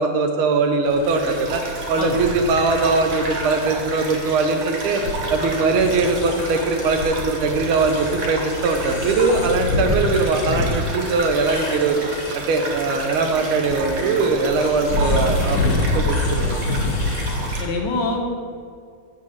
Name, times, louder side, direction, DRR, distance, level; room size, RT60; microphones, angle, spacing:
voice 1, 0.0-1.6 1.9-5.0 5.3-12.0 12.3-16.7, right 3 dB, 85° right, 5 dB, 1.6 m, -21 dB
sound 1, 0.8-17.6, left 2 dB, 80° left, 1.6 m, -27 dB
sound 2, 0.9-17.6, right 2 dB, 50° right, 1.2 m, -32 dB
voice 2, 17.6-18.2, left 3 dB, 65° left, 1 dB, 1.4 m, -25 dB
7.3 x 3.8 x 6.3 m, 2.1 s
omnidirectional pair, 2.2 m